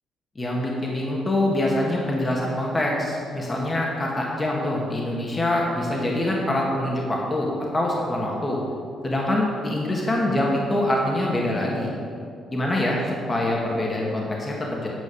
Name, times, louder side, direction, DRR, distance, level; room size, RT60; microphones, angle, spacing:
voice 1, 0.3-8.6 9.0-12.0 12.5-14.9, left 1 dB, 25° left, -2 dB, 1.6 m, -24 dB
9.7 x 5.3 x 7.0 m, 2.4 s
cardioid pair, 90°, 0 cm